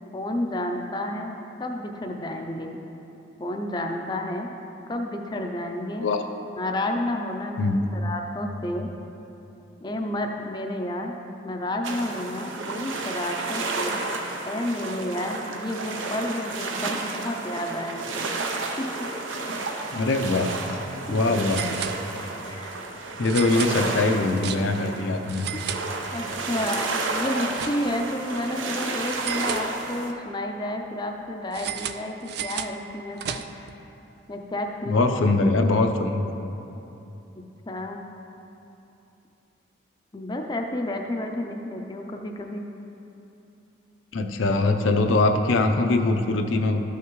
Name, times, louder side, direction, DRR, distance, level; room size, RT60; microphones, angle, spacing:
voice 1, 0.1-1.3 1.6-2.8 3.4-4.5 4.9-6.1 6.6-8.9 9.8-11.1 11.4-14.0 14.5-18.3 18.8-18.9 19.4-19.7 22.5-22.7 25.5-25.7 26.1-33.7 34.3-35.3 37.7-38.0 40.1-42.7, left 1 dB, 20° left, 2 dB, 0.4 m, -31 dB
sound 1, 11.8-30.1, right 3 dB, 85° right, 0.7 m, -31 dB
voice 2, 19.9-20.5 21.1-21.8 23.2-25.5 34.9-36.2 44.1-46.8, left 2 dB, 85° left, 4 dB, 0.6 m, -22 dB
sound 2, 21.4-22.5 23.2-24.9 25.2-26.4 26.7-28.1 29.1-30.2 31.5-33.8, right 9 dB, 55° right, 0.3 m, -35 dB
13.0 x 5.8 x 3.1 m, 2.9 s
head